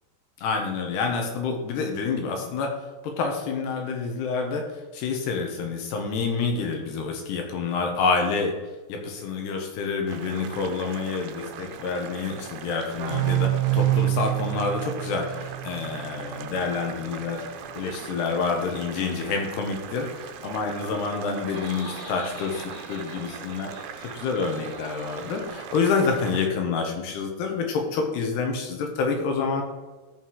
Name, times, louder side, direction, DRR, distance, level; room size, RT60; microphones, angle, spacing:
voice 1, 0.4-2.7 3.0-4.7 4.9-8.5 8.9-17.4 17.7-23.7 24.0-29.6, left 4 dB, 75° left, 3 dB, 3.5 m, -28 dB
Boiling, 10.1-26.5, right 8 dB, 80° right, 2.8 m, -40 dB
sound 1, 13.0-16.4, right 15 dB, 60° right, 2.7 m, -26 dB
Laughter, 21.0-26.1, left 2 dB, 45° left, 2.4 m, -45 dB
14.0 x 5.6 x 4.8 m, 1.2 s
omnidirectional pair, 4.9 m